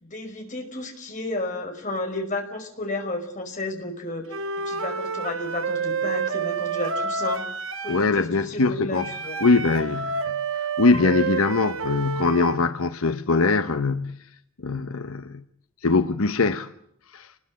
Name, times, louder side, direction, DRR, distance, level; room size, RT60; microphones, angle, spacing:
voice 1, 0.0-7.4 7.8-9.4, left 2 dB, 35° left, 5.3 m, -32 dB
Wind instrument woodwind instrument, 4.3-8.1 9.0-12.6, right 4 dB, 75° right, 1.7 m, -29 dB
voice 2, 7.9-9.1 9.4-10.4 10.8-14.2 14.6-15.4 15.8-16.7 17.1-17.3, left 3 dB, 80° left, 1.0 m, -22 dB
29.0 x 20.5 x 8.4 m
head